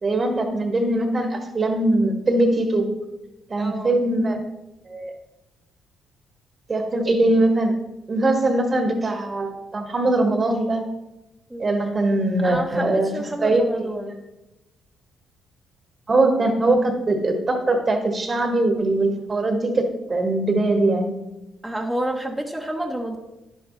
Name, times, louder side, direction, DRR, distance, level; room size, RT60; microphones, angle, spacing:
voice 1, 0.0-3.0 3.5-4.4 4.9-5.1 6.7-7.8 8.1-10.9 11.6-13.1 13.4-13.9 16.1-21.1, right 2 dB, 35° right, 4 dB, 1.4 m, -21 dB
voice 2, 3.6-4.0 11.5-11.7 12.4-14.2 21.6-23.2, right 1 dB, 5° right, 1 dB, 1.0 m, -29 dB
10.5 x 10.5 x 3.2 m, 0.97 s
cardioid pair, 90°, 0 cm